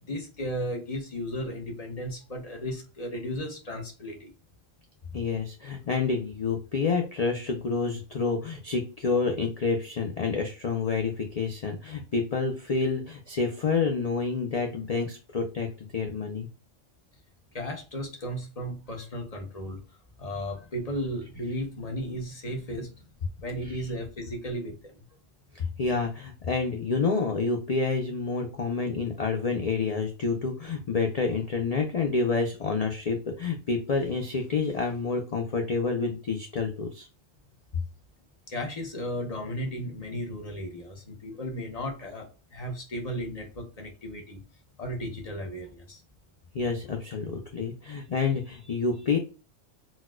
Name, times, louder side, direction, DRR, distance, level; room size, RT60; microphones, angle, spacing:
voice 1, 0.0-4.3 17.5-19.8 20.2-23.0 23.4-25.0 38.5-44.4 44.8-46.0, equal, 40° left, 2 dB, 0.7 m, -35 dB
voice 2, 5.1-16.5 23.7-23.9 25.5-37.1 46.5-49.2, left 4 dB, 65° left, 3 dB, 0.3 m, -28 dB
4.1 x 2.2 x 2.2 m, 0.32 s
omnidirectional pair, 1.3 m